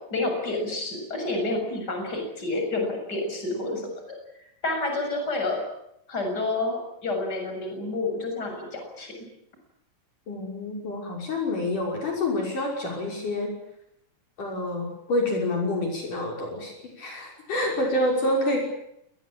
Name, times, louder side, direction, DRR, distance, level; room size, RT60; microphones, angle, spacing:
voice 1, 0.1-3.9 4.6-5.6 6.1-9.1, left 2 dB, 25° left, 3 dB, 7.6 m, -29 dB
voice 2, 10.3-13.5 14.4-18.6, left 1 dB, 60° left, 0 dB, 7.3 m, -27 dB
27.5 x 21.0 x 8.8 m, 0.77 s
omnidirectional pair, 4.2 m